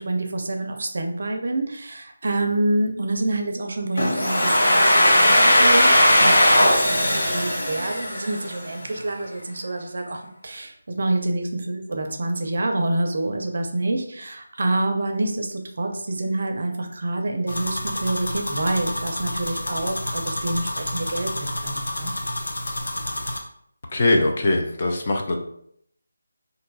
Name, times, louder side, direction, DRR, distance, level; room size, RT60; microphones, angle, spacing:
voice 1, 0.0-22.1, right 2 dB, 40° right, 4 dB, 0.5 m, -27 dB
Domestic sounds home sounds, 4.0-8.7, left 1 dB, 45° left, 0.9 m, -18 dB
sound 1, 17.5-23.4, left 1 dB, 80° left, 0.7 m, -29 dB
voice 2, 23.9-25.4, left 2 dB, 25° left, 2 dB, 0.3 m, -21 dB
2.6 x 2.3 x 3.9 m, 0.70 s
figure-of-eight pair, 175°, 0 cm